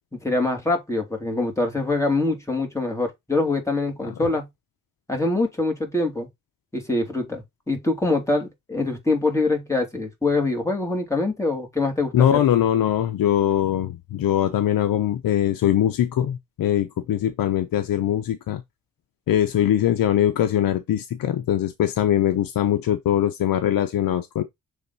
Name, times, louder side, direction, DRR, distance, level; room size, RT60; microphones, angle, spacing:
voice 1, 0.1-4.4 5.1-6.3 6.7-12.4, left 2 dB, 10° left, 2.8 m, -24 dB
voice 2, 12.1-18.6 19.3-24.4, left 11 dB, 80° left, 0.8 m, -22 dB
7.1 x 3.5 x 4.1 m
cardioid pair, 95°, 34 cm